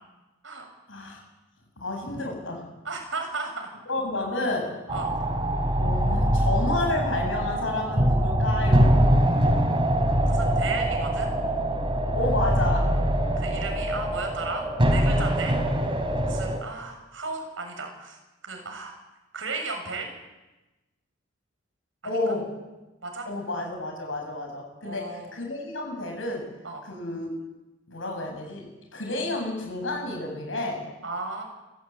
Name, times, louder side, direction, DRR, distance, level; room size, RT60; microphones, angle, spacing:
voice 1, 0.9-1.2 1.8-2.7 3.9-4.8 5.6-9.0 12.1-12.9 22.0-22.5 23.2-26.5 26.8-27.3 27.9-30.8, left 2 dB, 90° left, 2 dB, 7.9 m, -30 dB
voice 2, 2.8-3.7 4.9-5.1 10.2-11.3 13.4-15.6 16.2-18.2 18.4-18.9 19.3-20.1 23.0-23.3 24.8-25.3 26.6-26.8 31.0-31.4, right 3 dB, 90° right, 3 dB, 6.9 m, -34 dB
sound 1, 4.9-16.6, right 1 dB, 25° right, 3.4 m, -23 dB
29.0 x 16.0 x 9.0 m, 1.1 s
head